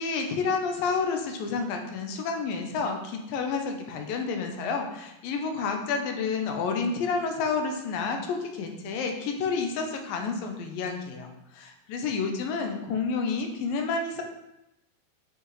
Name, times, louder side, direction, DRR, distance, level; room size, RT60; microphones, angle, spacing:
voice 1, 0.0-14.2, left 4 dB, 75° left, 4 dB, 2.4 m, -30 dB
8.1 x 6.0 x 3.2 m, 0.88 s
omnidirectional pair, 4.4 m